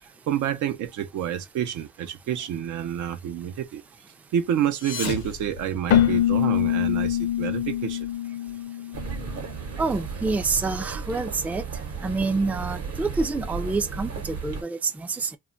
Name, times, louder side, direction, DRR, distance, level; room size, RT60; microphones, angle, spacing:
voice 1, 0.3-3.8 4.3-8.1, right 10 dB, 75° right, 0.6 m, -28 dB
sound 1, 4.6-6.4, left 6 dB, 90° left, 0.8 m, -36 dB
Keyboard (musical), 5.9-9.5, left 11 dB, 55° left, 0.5 m, -24 dB
sound 2, 8.9-14.6, right 5 dB, 55° right, 0.9 m, -34 dB
voice 2, 9.8-11.6 12.0-15.4, right 3 dB, 5° right, 0.3 m, -27 dB
2.2 x 2.1 x 3.8 m
cardioid pair, 90°, 30 cm